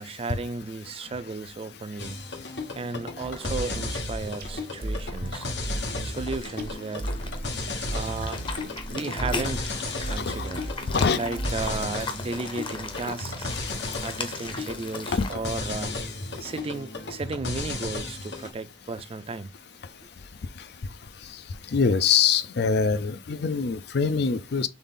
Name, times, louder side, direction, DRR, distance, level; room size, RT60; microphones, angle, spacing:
voice 1, 0.0-2.2 2.7-5.5 6.0-7.1 7.9-8.4 8.9-9.7 10.1-10.7 11.1-13.5 14.0-16.0 16.4-19.5, right 3 dB, 35° right, 0.4 m, -34 dB
sound 1, 2.0-18.5, left 2 dB, 85° left, 1.3 m, -35 dB
sound 2, 3.3-15.3, left 3 dB, 30° left, 0.7 m, -38 dB
sound 3, 3.4-12.1, right 1 dB, 55° right, 0.9 m, -34 dB
voice 2, 10.9-11.2 15.1-15.4 20.6-20.7 21.2-21.4 21.7-24.7, left 5 dB, 65° left, 0.5 m, -24 dB
4.0 x 3.5 x 3.7 m
head